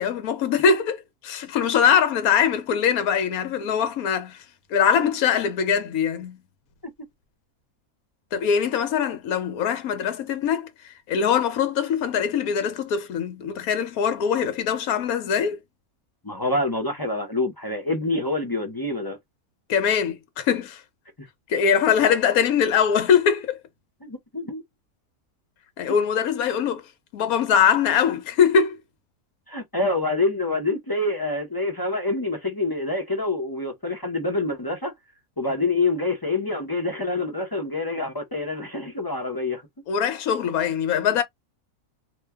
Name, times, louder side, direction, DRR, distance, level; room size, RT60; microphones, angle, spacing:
voice 1, 0.0-4.4 4.7-6.4 8.3-10.7 11.1-15.6 19.7-20.8 21.5-23.6 25.8-26.8 27.1-28.8 39.9-41.2, left 7 dB, 75° left, 1.2 m, -22 dB
voice 2, 16.2-19.2 24.0-24.6 25.9-26.0 29.5-34.9 35.4-39.6, left 2 dB, 30° left, 0.4 m, -26 dB
2.9 x 2.2 x 3.4 m
omnidirectional pair, 1.6 m